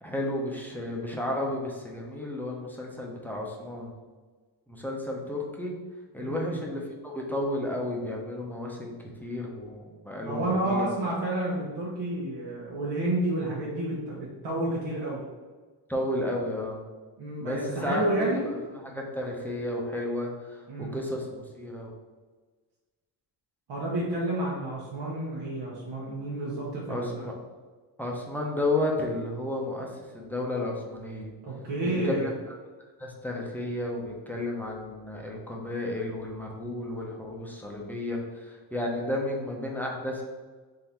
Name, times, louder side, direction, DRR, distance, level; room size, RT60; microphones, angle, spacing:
voice 1, 0.0-3.9 4.7-5.7 6.1-8.9 9.2-10.9 15.9-16.8 17.4-21.9 26.9-27.3 28.0-31.3 31.8-32.5 33.0-40.2, left 1 dB, 5° left, -2 dB, 0.6 m, -32 dB
voice 2, 6.2-6.6 10.3-15.2 17.2-18.4 20.7-21.0 23.7-27.3 31.4-32.3, right 1 dB, 70° right, -6 dB, 1.0 m, -30 dB
3.7 x 2.7 x 4.4 m, 1.4 s
cardioid pair, 140°, 44 cm